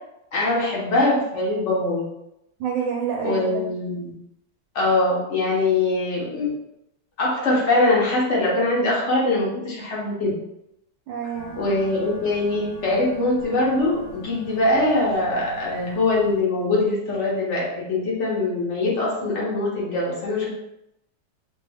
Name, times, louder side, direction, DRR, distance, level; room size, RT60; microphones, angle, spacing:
voice 1, 0.3-2.0 3.2-4.1 4.7-6.5 7.2-10.3 11.5-20.5, left 2 dB, 50° left, -5 dB, 1.0 m, -22 dB
voice 2, 2.6-3.8 11.1-11.5, right 6 dB, 90° right, 0 dB, 1.3 m, -27 dB
sound 1, 11.3-16.4, right 2 dB, 70° left, 1.5 m, -42 dB
3.2 x 2.6 x 3.4 m, 0.84 s
omnidirectional pair, 2.0 m